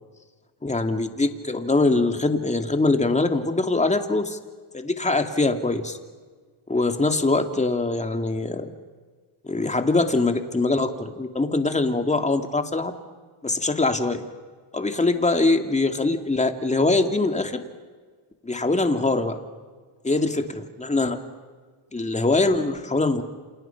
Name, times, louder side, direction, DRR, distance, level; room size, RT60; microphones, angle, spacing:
voice 1, 0.6-4.4 4.7-6.0 6.7-8.7 9.4-12.9 13.4-14.3 14.7-17.6 18.4-19.4 20.0-21.2 21.9-23.2, left 2 dB, 15° left, 6 dB, 2.4 m, -23 dB
28.5 x 28.5 x 5.9 m, 1.5 s
cardioid pair, 105°, 49 cm